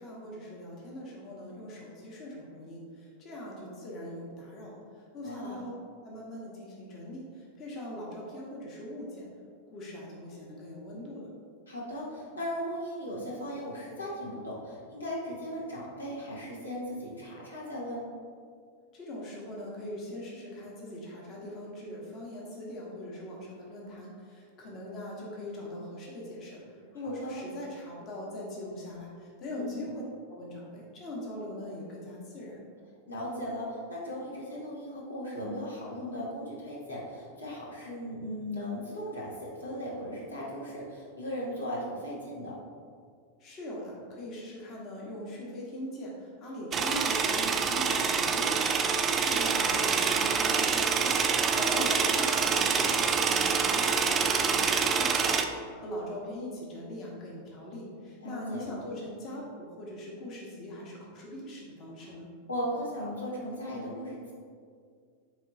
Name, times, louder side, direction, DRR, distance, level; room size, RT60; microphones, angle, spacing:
voice 1, 0.0-4.8 5.1-5.7 6.0-9.2 9.7-11.3 18.9-26.6 26.9-30.0 30.3-32.6 43.4-62.3, left 1 dB, 35° left, -3 dB, 1.1 m, -41 dB
voice 2, 5.2-5.7 11.7-18.0 27.0-27.4 29.4-30.0 33.1-42.5 51.5-51.9 58.2-58.6 62.0-62.1 62.5-64.3, equal, 75° left, -5 dB, 0.9 m, -37 dB
sound 1, 46.7-55.4, right 5 dB, 25° right, 0.3 m, -26 dB
4.3 x 3.1 x 3.8 m, 2.1 s
figure-of-eight pair, 90°, 0 cm